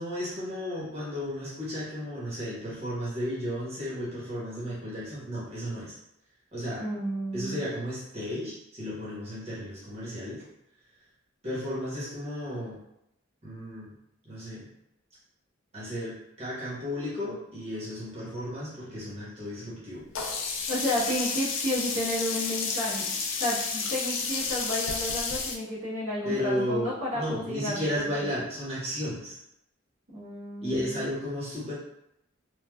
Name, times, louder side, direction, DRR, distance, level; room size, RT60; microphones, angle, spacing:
voice 1, 0.0-5.9 6.5-6.8 7.3-10.4 11.4-12.8 13.4-13.9 14.2-14.6 15.7-20.0 26.2-29.4 30.6-31.7, left 1 dB, 35° right, -8 dB, 1.0 m, -33 dB
voice 2, 6.8-7.6 20.7-28.3 30.1-31.0, left 1 dB, 75° right, -8 dB, 1.0 m, -32 dB
Sink (filling or washing), 20.2-25.6, left 4 dB, 80° left, 0.4 m, -31 dB
3.2 x 2.2 x 2.2 m, 0.80 s
head